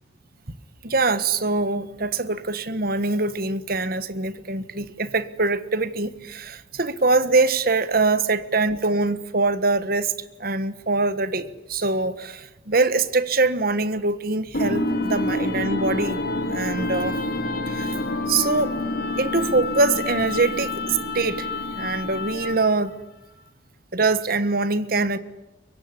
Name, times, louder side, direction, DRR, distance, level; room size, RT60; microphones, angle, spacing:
voice 1, 0.8-10.1 10.4-16.2 16.5-17.2 17.7-17.9 18.3-18.7 19.2-23.0 23.9-25.2, right 3 dB, 50° right, 1.5 m, -23 dB
sound 1, 14.5-22.7, left 2 dB, 55° left, 3.1 m, -27 dB
24.0 x 23.5 x 9.9 m
head